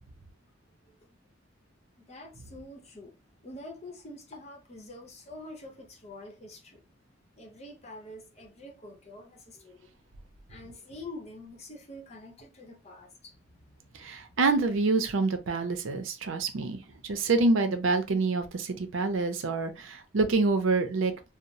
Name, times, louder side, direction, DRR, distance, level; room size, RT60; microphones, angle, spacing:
voice 1, 2.1-3.1 3.4-6.8 7.4-9.8 10.5-13.6 16.9-17.0, left 1 dB, 35° left, 0.8 m, -46 dB
voice 2, 14.0-21.1, right 3 dB, 90° right, 0.5 m, -27 dB
2.9 x 2.0 x 2.5 m
head